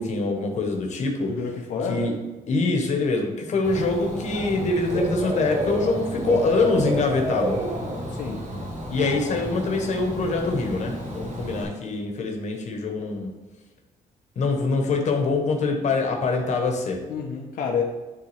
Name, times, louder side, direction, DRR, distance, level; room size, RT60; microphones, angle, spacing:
voice 1, 0.0-1.3 1.9-2.1 2.5-7.6 8.9-13.3 14.4-17.0, left 3 dB, 50° left, 2 dB, 1.1 m, -24 dB
voice 2, 1.2-2.1 8.1-8.4 17.1-17.8, left 6 dB, 75° left, -1 dB, 0.8 m, -29 dB
Dog / Bird, 3.6-11.6, right 1 dB, 50° right, 1.6 m, -30 dB
9.7 x 3.7 x 3.4 m, 1.2 s
cardioid pair, 165°, 15 cm